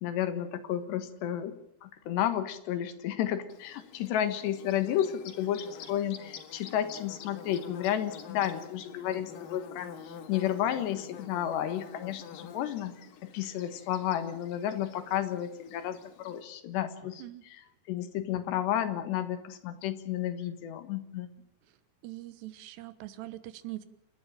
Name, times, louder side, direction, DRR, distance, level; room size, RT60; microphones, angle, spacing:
voice 1, 0.0-1.5 1.8-17.2 17.9-21.3, left 11 dB, 85° left, 10 dB, 3.7 m, -32 dB
Bird / Buzz, 3.5-16.4, left 7 dB, 65° left, 3.1 m, -48 dB
voice 2, 22.0-23.9, right 16 dB, 85° right, 14 dB, 3.3 m, -42 dB
28.5 x 12.5 x 8.9 m, 0.79 s
omnidirectional pair, 4.8 m